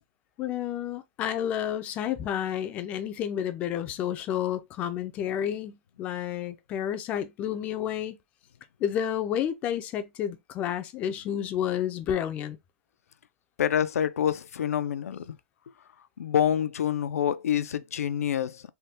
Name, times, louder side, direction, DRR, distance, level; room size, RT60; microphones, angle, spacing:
voice 1, 0.4-8.2 8.8-12.6, left 10 dB, 20° left, 0.3 m, -30 dB
voice 2, 13.6-15.4 16.2-18.6, left 9 dB, 85° left, 0.4 m, -27 dB
3.3 x 2.2 x 2.8 m
hypercardioid pair, 160°, 8 cm